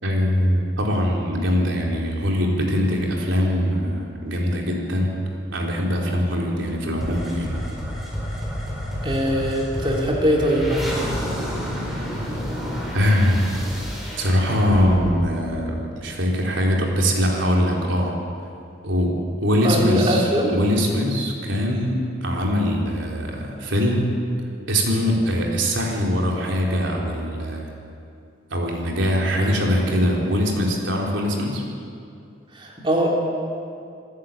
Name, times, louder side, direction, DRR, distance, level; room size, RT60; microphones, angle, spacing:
voice 1, 0.0-5.1 5.5-7.6 12.9-13.4 14.2-18.1 18.8-19.1 19.4-20.2 20.5-24.1 24.7-27.7 28.5-31.6, equal, 90° right, -1 dB, 3.9 m, -22 dB
sound 1, 7.0-16.3, equal, ahead, 4.3 m, -30 dB
voice 2, 9.0-11.0 19.6-20.5 29.4-29.5 32.5-33.1, equal, 25° right, -2 dB, 3.3 m, -22 dB
26.0 x 11.5 x 8.8 m, 2.4 s
head